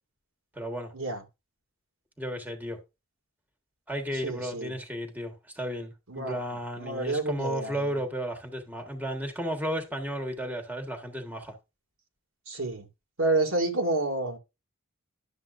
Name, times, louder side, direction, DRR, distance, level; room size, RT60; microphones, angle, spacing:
voice 1, 0.5-0.9 2.2-2.8 3.9-11.5, equal, 10° right, 1.4 m, -34 dB
voice 2, 4.2-4.7 6.1-6.4 6.8-7.8 12.5-12.9 13.2-14.4, right 2 dB, 75° right, 2.2 m, -29 dB
11.5 x 7.6 x 2.6 m
head